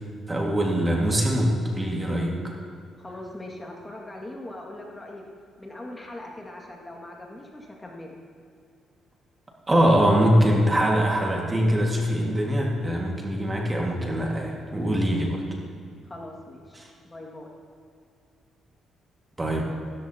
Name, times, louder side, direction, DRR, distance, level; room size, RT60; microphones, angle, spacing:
voice 1, 0.3-2.6 9.7-15.4 16.8-16.9 19.4-19.6, equal, 20° right, -1 dB, 1.9 m, -23 dB
voice 2, 3.0-5.3 5.6-8.2 16.0-17.5, left 1 dB, 20° left, -1 dB, 2.1 m, -41 dB
15.0 x 13.5 x 2.9 m, 2.4 s
cardioid pair, 90°, 0 cm